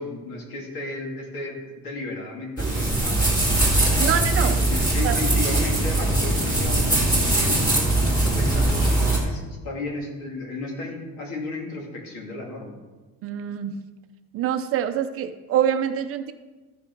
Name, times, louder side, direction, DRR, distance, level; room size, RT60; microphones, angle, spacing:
voice 1, 0.0-3.2 4.4-8.8 9.2-12.7, left 2 dB, 75° left, 0 dB, 2.6 m, -34 dB
sound 1, 2.6-9.2, right 2 dB, 10° left, 2.2 m, -21 dB
voice 2, 4.0-4.5 5.0-5.2 13.2-13.8 14.3-16.3, right 9 dB, 40° right, 8 dB, 0.5 m, -25 dB
13.5 x 5.9 x 4.6 m, 1.2 s
cardioid pair, 175°, 35 cm